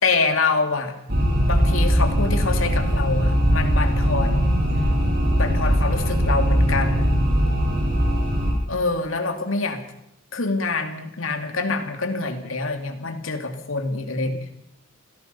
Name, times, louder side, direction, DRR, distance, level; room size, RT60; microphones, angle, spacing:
voice 1, 0.0-1.0 1.5-4.5 5.4-7.1 8.7-9.8 10.3-14.5, left 3 dB, 80° left, 6 dB, 2.7 m, -25 dB
sound 1, 1.1-8.5, equal, 50° right, 6.7 m, -20 dB
27.0 x 17.0 x 5.7 m, 0.80 s
head